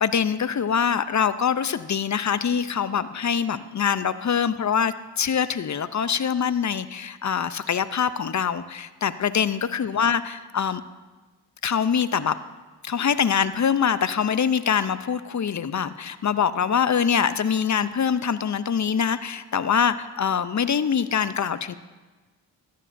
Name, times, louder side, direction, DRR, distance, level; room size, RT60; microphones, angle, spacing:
voice 1, 0.0-10.8 11.6-12.4 12.8-21.7, left 7 dB, 40° left, 14 dB, 0.5 m, -24 dB
14.0 x 13.5 x 2.6 m, 1.3 s
cardioid pair, 50°, 46 cm